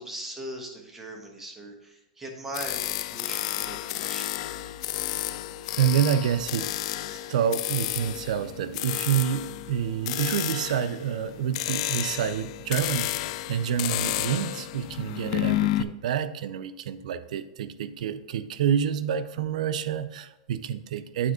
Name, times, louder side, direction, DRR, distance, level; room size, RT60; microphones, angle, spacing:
voice 1, 0.0-4.3, right 1 dB, 10° right, 1.3 m, -40 dB
sound 1, 2.5-15.8, left 15 dB, 55° left, 0.4 m, -31 dB
voice 2, 5.7-6.8 7.3-13.1 13.5-21.3, right 9 dB, 75° right, 0.5 m, -28 dB
8.7 x 4.4 x 4.9 m
supercardioid pair, 145°, 4 cm